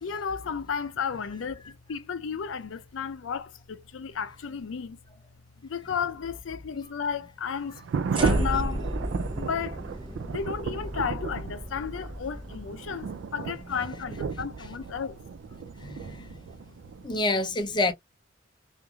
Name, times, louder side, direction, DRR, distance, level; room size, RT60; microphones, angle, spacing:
voice 1, 0.0-5.0 5.6-7.8 8.1-8.8 9.4-9.8 10.3-15.2 16.0-16.4, left 6 dB, 80° left, 0.5 m, -33 dB
sound 1, 7.7-17.2, right 6 dB, 65° right, 0.3 m, -35 dB
sound 2, 8.1-14.4, equal, 25° right, 0.8 m, -33 dB
voice 2, 15.8-16.2 17.0-17.9, left 2 dB, 25° left, 0.5 m, -27 dB
3.0 x 2.4 x 2.2 m
head